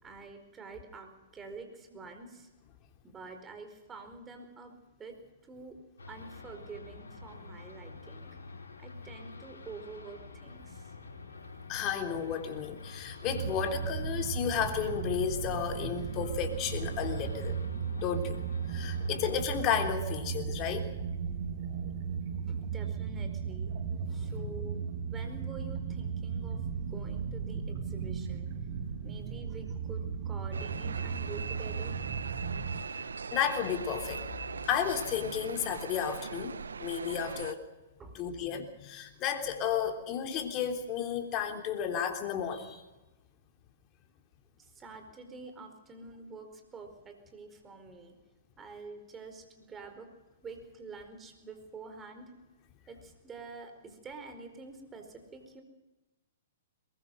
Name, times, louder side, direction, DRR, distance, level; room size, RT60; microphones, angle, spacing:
voice 1, 0.0-2.5 3.0-5.2 5.4-5.8 6.1-8.4 8.8-10.9 22.5-23.7 24.1-28.5 29.0-32.0 38.0-38.3 44.6-48.1 48.6-50.1 50.4-52.3 52.9-55.6, right 4 dB, 20° right, 6 dB, 4.7 m, -47 dB
sound 1, 6.0-20.0, left 3 dB, 85° left, 4.7 m, -48 dB
voice 2, 11.7-17.6 18.0-18.4 18.7-20.9 24.1-24.7 33.3-34.2 34.6-37.6 38.1-42.8, left 8 dB, 35° left, 4 dB, 3.5 m, -33 dB
sound 2, 13.3-32.8, right 6 dB, 55° right, 2.1 m, -36 dB
sound 3, 30.5-37.5, right 5 dB, 85° right, 0.9 m, -40 dB
22.5 x 21.0 x 6.5 m, 1.1 s
hypercardioid pair, 125°, 0 cm